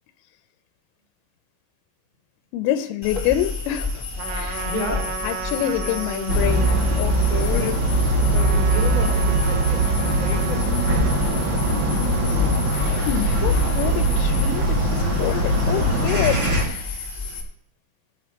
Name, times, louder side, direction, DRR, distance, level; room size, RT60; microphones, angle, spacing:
voice 1, 2.5-4.1 4.3-4.7 5.2-7.7 12.9-17.1, left 12 dB, 85° left, 10 dB, 3.1 m, -27 dB
sound 1, 3.0-17.4, left 3 dB, 40° left, 0.3 m, -30 dB
Trumpet, 4.2-13.0, right 7 dB, 80° right, 2.1 m, -34 dB
voice 2, 4.5-5.1 7.5-7.8 8.2-10.9, left 3 dB, 20° left, -4 dB, 3.3 m, -31 dB
sound 2, 6.3-16.6, right 1 dB, 35° right, 2.1 m, -21 dB
19.0 x 9.4 x 3.1 m, 0.68 s
omnidirectional pair, 5.5 m